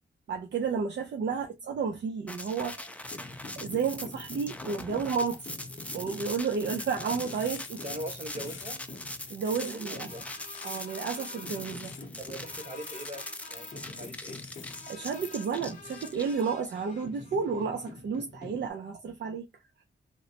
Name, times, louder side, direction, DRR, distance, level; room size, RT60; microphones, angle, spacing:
voice 1, 0.3-5.6 5.9-7.8 9.3-10.1 10.6-12.0 14.9-19.5, right 5 dB, 65° right, 0.5 m, -32 dB
sound 1, 2.3-16.7, left 1 dB, 5° left, 0.4 m, -42 dB
sound 2, 3.0-18.7, left 3 dB, 40° left, 0.7 m, -47 dB
sound 3, 7.1-7.9 8.2-8.9 9.3-9.8 10.3-11.0 11.4-12.1 12.6-13.2 13.7-15.3 15.9-16.3, left 8 dB, 85° left, 0.5 m, -50 dB
voice 2, 7.8-8.8 9.6-10.3 12.2-14.4, right 1 dB, 35° right, 1.3 m, -42 dB
3.0 x 2.1 x 2.8 m
wide cardioid pair, 110°, 19 cm